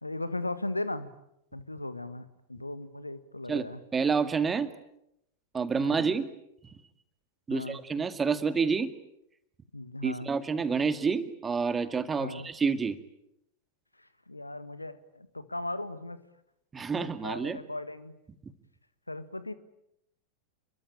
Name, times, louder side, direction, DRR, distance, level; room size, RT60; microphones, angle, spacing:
voice 1, 0.0-1.1 1.5-3.8 5.8-6.0 7.5-7.8 9.7-10.3 12.2-12.5 14.3-16.2 17.0-18.1 19.1-19.5, left 2 dB, 85° left, 13 dB, 1.8 m, -37 dB
voice 2, 3.5-4.7 5.5-6.3 6.6-6.7 7.5-8.9 10.0-13.0 16.7-17.6, right 5 dB, 15° right, 11 dB, 2.1 m, -28 dB
29.5 x 22.5 x 8.8 m, 0.81 s
figure-of-eight pair, 90°, 0 cm